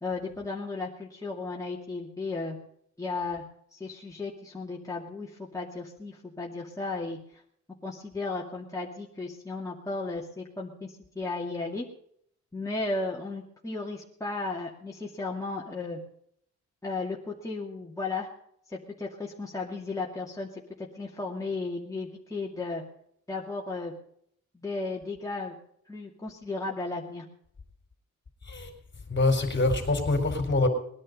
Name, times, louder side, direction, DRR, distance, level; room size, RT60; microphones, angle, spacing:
voice 1, 0.0-2.6 3.0-3.4 3.7-7.2 7.8-11.9 12.5-16.0 16.8-18.3 18.7-22.8 23.3-23.9 24.5-25.5 25.9-27.3, left 3 dB, 10° left, -3 dB, 2.4 m, -35 dB
voice 2, 29.1-30.7, left 2 dB, 35° left, 6 dB, 4.2 m, -25 dB
20.5 x 11.0 x 5.4 m, 0.68 s
cardioid pair, 100°, 31 cm